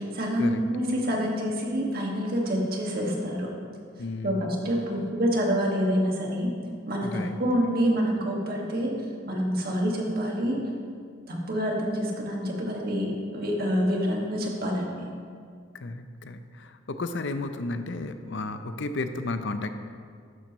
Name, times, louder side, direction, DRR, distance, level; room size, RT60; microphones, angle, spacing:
voice 1, 0.0-3.5 4.2-6.5 6.9-9.0 9.3-10.7 11.3-15.1, equal, 50° right, -2 dB, 1.9 m, -27 dB
voice 2, 4.0-4.5 7.0-7.3 15.8-19.8, left 2 dB, 60° left, 9 dB, 0.6 m, -33 dB
12.5 x 10.5 x 3.1 m, 2.1 s
head